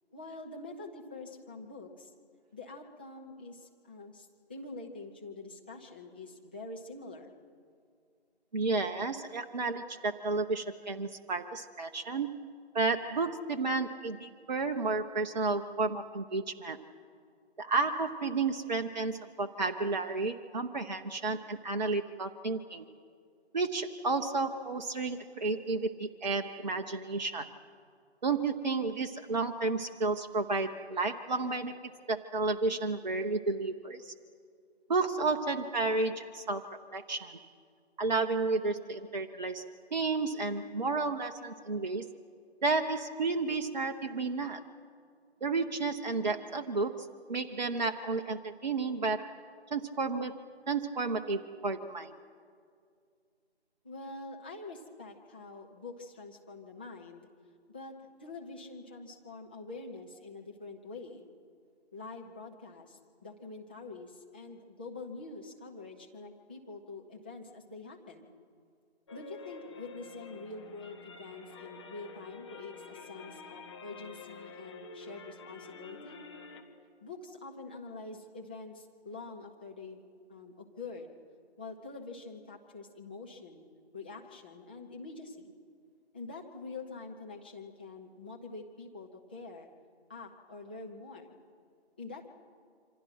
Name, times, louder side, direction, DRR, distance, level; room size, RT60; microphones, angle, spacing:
voice 1, 0.1-2.1 2.5-7.3 53.8-57.3 57.7-61.3 61.9-68.3 69.1-76.2 77.0-80.0 80.3-81.1 81.6-83.6 83.9-85.5 86.1-89.7 90.1-91.4 92.0-92.3, left 3 dB, 10° left, -2 dB, 0.7 m, -45 dB
voice 2, 8.5-12.3 12.7-16.8 17.6-22.9 23.5-27.6 28.2-31.8 32.1-34.1 34.9-37.5 38.0-42.1 42.6-44.6 45.4-49.4 49.7-50.4 50.7-52.1, right 3 dB, 40° right, 5 dB, 0.9 m, -32 dB
sound 1, 69.1-76.6, left 4 dB, 25° left, 1.6 m, -48 dB
27.5 x 25.5 x 6.0 m, 2.3 s
figure-of-eight pair, 150°, 34 cm